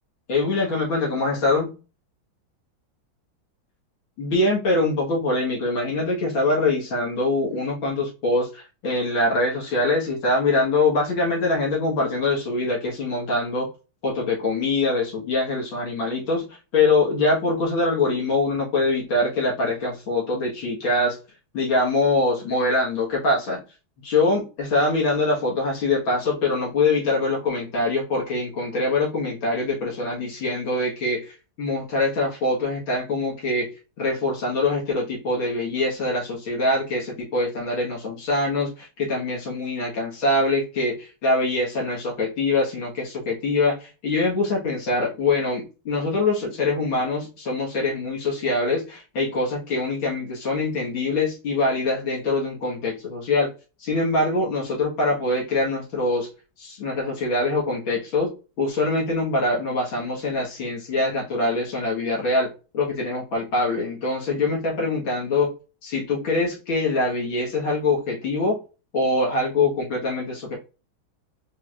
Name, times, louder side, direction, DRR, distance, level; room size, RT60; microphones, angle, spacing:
voice 1, 0.3-1.7 4.2-13.7 14.0-21.2 21.5-23.6 24.0-33.7 34.0-53.5 53.8-56.3 56.6-58.3 58.6-62.5 62.7-65.5 65.8-68.6 68.9-70.6, left 2 dB, 75° left, -3 dB, 2.3 m, -24 dB
4.8 x 4.0 x 2.4 m, 0.32 s
omnidirectional pair, 2.2 m